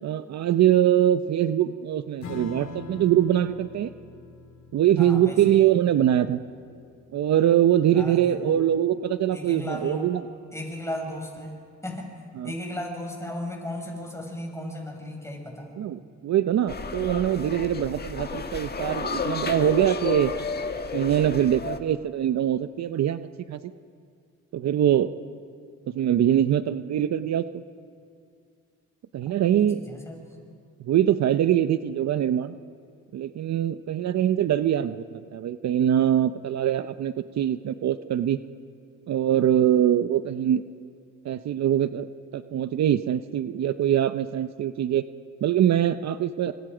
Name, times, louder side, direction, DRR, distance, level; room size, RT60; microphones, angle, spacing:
voice 1, 0.0-3.9 4.7-6.4 7.1-10.2 12.4-12.5 15.8-20.3 20.9-23.6 24.5-25.1 25.9-27.4 29.1-29.8 30.8-32.5 33.1-38.4 39.1-40.6 41.2-42.1 42.3-45.0 45.4-46.5, right 11 dB, 60° right, 11 dB, 0.8 m, -23 dB
Strum, 2.2-9.1, left 3 dB, 70° left, 2.7 m, -44 dB
voice 2, 5.0-5.6 7.9-8.6 9.3-10.1 10.5-12.1 12.4-15.8 29.5-30.2, left 1 dB, 10° left, 1 dB, 6.0 m, -35 dB
sound 1, 16.7-21.8, left 5 dB, 30° left, 1.6 m, -32 dB
27.5 x 25.5 x 5.0 m, 2.3 s
cardioid pair, 90°, 30 cm